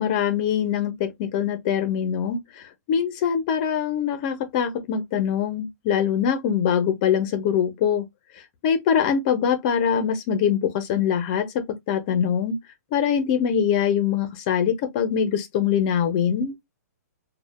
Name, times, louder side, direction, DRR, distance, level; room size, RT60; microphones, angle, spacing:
voice 1, 0.0-8.1 8.6-12.6 12.9-16.6, left 8 dB, 30° left, 0.6 m, -23 dB
3.1 x 2.1 x 2.2 m
hypercardioid pair, 165°, 9 cm